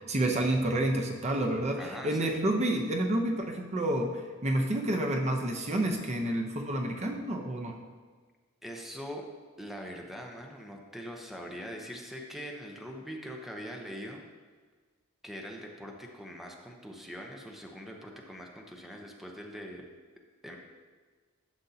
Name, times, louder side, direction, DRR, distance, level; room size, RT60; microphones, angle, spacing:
voice 1, 0.0-7.8, right 1 dB, 30° right, 2 dB, 0.7 m, -29 dB
voice 2, 1.8-2.4 8.6-9.3 9.6-14.3 15.2-19.8 20.4-20.6, equal, ahead, 0 dB, 0.7 m, -42 dB
11.5 x 7.0 x 2.8 m, 1.5 s
head